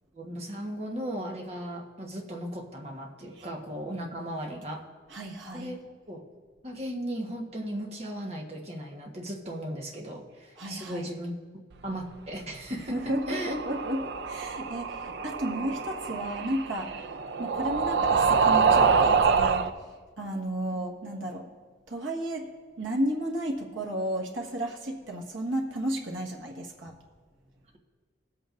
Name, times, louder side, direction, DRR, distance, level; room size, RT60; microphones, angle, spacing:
voice 1, 0.1-4.9 5.5-6.2 6.6-13.0 13.3-13.6, right 1 dB, 35° right, 0 dB, 1.2 m, -37 dB
voice 2, 5.1-5.8 10.6-11.1 12.9-14.0 14.2-17.0 17.4-19.7 20.2-21.5 21.9-22.5 22.8-26.9, right 1 dB, 85° right, 0 dB, 1.5 m, -33 dB
sound 1, 13.0-19.7, right 5 dB, 60° right, 0.4 m, -26 dB
20.5 x 8.1 x 2.6 m, 1.5 s
head